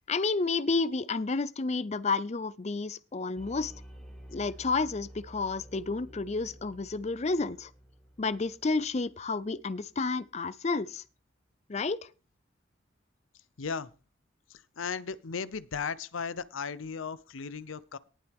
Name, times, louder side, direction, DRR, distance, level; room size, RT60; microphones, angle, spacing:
voice 1, 0.1-3.7 4.3-7.7 8.2-11.0 11.7-12.0, left 3 dB, 35° left, 0.5 m, -30 dB
sound 1, 3.4-10.2, equal, 5° left, 2.8 m, -51 dB
voice 2, 13.6-13.9 14.5-18.0, left 5 dB, 85° left, 0.7 m, -36 dB
18.5 x 7.7 x 3.5 m
head